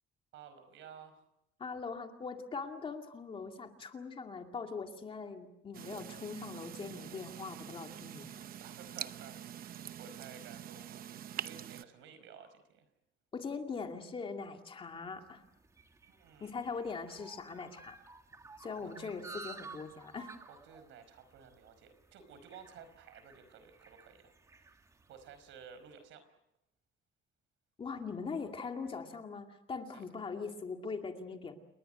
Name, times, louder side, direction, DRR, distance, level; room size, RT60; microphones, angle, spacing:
voice 1, 0.3-1.2 8.6-12.9 16.0-16.6 18.8-19.1 20.5-24.8 25.1-26.3 29.9-30.0, right 7 dB, 75° right, 11 dB, 5.0 m, -54 dB
voice 2, 1.6-8.4 13.3-15.4 16.4-18.0 18.6-20.3 27.8-31.6, left 5 dB, 25° left, 4 dB, 2.3 m, -41 dB
sound 1, 5.7-11.8, right 10 dB, 50° right, 0.9 m, -45 dB
sound 2, 15.0-25.6, right 4 dB, 15° right, 1.7 m, -54 dB
29.5 x 21.0 x 7.9 m, 0.86 s
cardioid pair, 170°, 20 cm